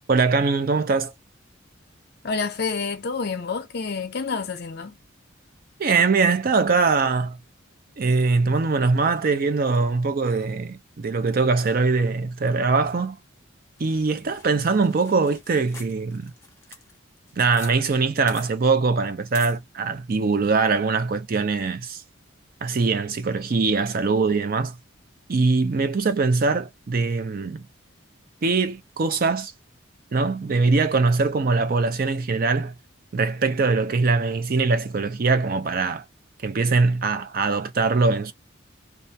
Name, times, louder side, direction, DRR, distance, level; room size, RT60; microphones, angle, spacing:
voice 1, 0.1-1.1 5.8-7.4 8.0-13.2 13.8-16.3 17.4-22.0 22.6-24.8 25.3-27.6 28.4-29.5 30.1-32.7 33.1-36.0 36.4-38.3, right 4 dB, 45° right, 0.5 m, -22 dB
voice 2, 2.2-5.0, left 4 dB, 55° left, 0.6 m, -28 dB
sound 1, 13.8-17.7 18.0-18.1 18.3-18.5 19.3-19.6, left 4 dB, 15° left, 0.7 m, -44 dB
2.4 x 2.2 x 2.7 m
head